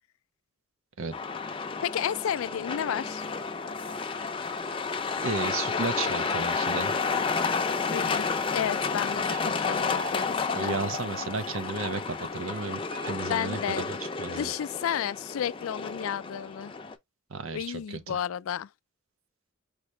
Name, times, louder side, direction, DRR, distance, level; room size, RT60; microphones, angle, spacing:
Truck, 1.1-16.9, left 5 dB, 25° left, 0.5 m, -31 dB
voice 1, 1.8-3.2 7.9-10.7 13.3-13.9 14.4-16.7 17.5-18.7, left 9 dB, 80° left, 0.3 m, -32 dB
voice 2, 5.2-6.9 10.5-12.8 13.1-13.9 14.2-14.5 17.3-18.2, right 4 dB, 80° right, 0.8 m, -33 dB
sound 1, 7.2-13.8, right 4 dB, 40° right, 1.2 m, -50 dB
5.0 x 2.8 x 3.2 m
head